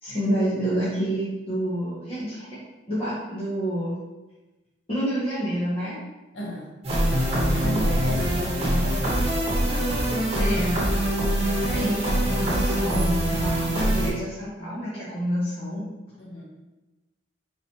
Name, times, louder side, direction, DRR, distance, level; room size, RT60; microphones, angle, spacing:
voice 1, 0.0-2.5 2.9-4.0 4.9-6.0 10.3-10.8 11.7-15.8, right 1 dB, 30° left, -11 dB, 1.0 m, -28 dB
voice 2, 6.3-6.7 7.6-9.4 11.4-11.8 16.2-16.4, equal, 80° left, -3 dB, 1.1 m, -35 dB
sound 1, 6.8-14.1, right 1 dB, 35° right, 1.1 m, -23 dB
3.9 x 3.0 x 2.9 m, 1.1 s
head